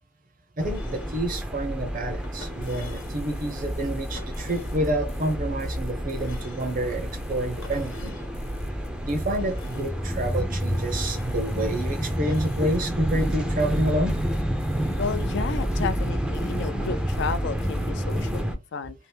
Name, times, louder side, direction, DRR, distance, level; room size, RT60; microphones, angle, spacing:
sound 1, 0.6-1.2 2.2-3.2 4.2-4.9 6.1-6.8 7.6-8.3 9.2-9.9 10.8-11.4 12.1-12.7, left 4 dB, 90° left, 1.0 m, -47 dB
sound 2, 0.6-18.5, equal, 5° right, 0.4 m, -29 dB
voice 1, 0.6-8.2 9.0-14.1, right 1 dB, 45° right, 0.6 m, -28 dB
sound 3, 2.6-18.4, left 1 dB, 30° left, 0.7 m, -42 dB
voice 2, 15.0-18.9, left 5 dB, 60° left, 0.4 m, -32 dB
2.8 x 2.0 x 3.3 m
head